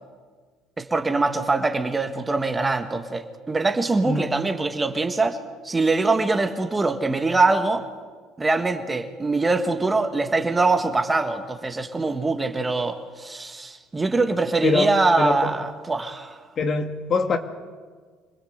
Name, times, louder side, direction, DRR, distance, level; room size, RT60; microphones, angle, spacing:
voice 1, 0.8-5.4 5.6-7.9 8.4-16.4, right 3 dB, 15° right, 7 dB, 1.6 m, -23 dB
voice 2, 15.2-15.5 16.6-17.4, left 4 dB, 40° left, 7 dB, 2.0 m, -23 dB
26.5 x 20.0 x 8.1 m, 1.5 s
cardioid pair, 125°, 0 cm